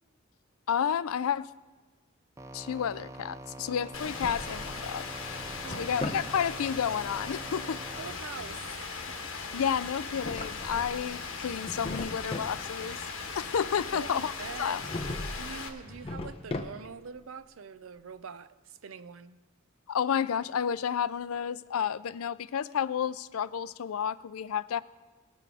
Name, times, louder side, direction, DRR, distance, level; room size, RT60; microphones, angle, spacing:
voice 1, 0.7-1.5 2.5-5.1 5.8-7.8 9.5-13.0 13.3-14.3 14.6-14.8 19.9-24.8, left 8 dB, 85° left, 0.4 m, -31 dB
sound 1, 2.4-8.1, right 1 dB, 15° right, 0.4 m, -45 dB
Drawer open or close, 3.8-4.8 5.3-6.3 9.9-11.1 11.5-12.6 14.8-15.5 15.8-17.1, left 2 dB, 25° left, 0.7 m, -38 dB
Rain, 3.9-15.7, left 4 dB, 70° left, 1.4 m, -39 dB
voice 2, 5.6-6.0 8.0-9.3 13.9-14.8 15.2-19.4, right 6 dB, 70° right, 0.5 m, -44 dB
19.0 x 6.9 x 4.9 m
head